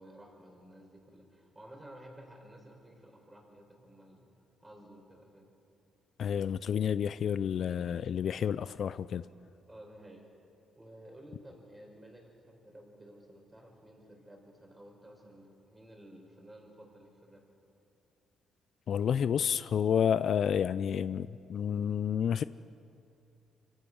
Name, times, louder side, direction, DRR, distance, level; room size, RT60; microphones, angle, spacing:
voice 1, 0.0-4.3 4.6-5.5 9.7-10.3 10.8-17.5, right 1 dB, 15° right, 0 dB, 5.4 m, -53 dB
voice 2, 6.2-9.2 18.9-22.4, left 8 dB, 60° left, 15 dB, 0.4 m, -30 dB
24.5 x 17.0 x 6.3 m, 2.7 s
cardioid pair, 90°, 0 cm